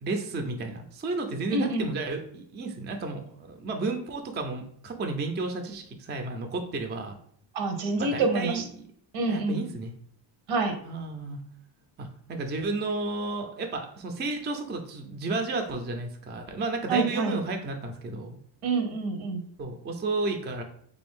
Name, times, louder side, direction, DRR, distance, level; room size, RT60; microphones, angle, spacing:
voice 1, 0.0-7.2 8.0-8.8 9.3-9.9 10.8-11.4 12.0-18.4 19.6-20.6, right 3 dB, 25° right, 4 dB, 0.4 m, -32 dB
voice 2, 1.5-1.9 7.5-8.6 9.1-9.6 10.5-10.7 16.9-17.4 18.6-19.4, right 3 dB, 75° right, 6 dB, 0.8 m, -27 dB
3.4 x 2.6 x 3.5 m, 0.62 s
cardioid pair, 125°, 47 cm